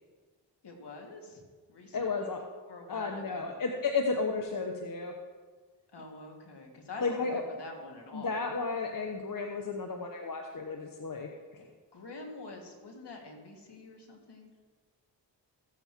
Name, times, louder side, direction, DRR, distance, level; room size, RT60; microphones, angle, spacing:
voice 1, 0.6-1.4 1.7-2.3 2.7-3.6 5.9-8.4 11.9-14.5, left 2 dB, 65° left, 1 dB, 2.2 m, -46 dB
voice 2, 1.9-2.4 2.9-5.1 7.0-7.4 8.1-11.7, left 4 dB, 50° left, 3 dB, 1.1 m, -33 dB
15.5 x 8.1 x 3.0 m, 1.4 s
cardioid pair, 45°, 44 cm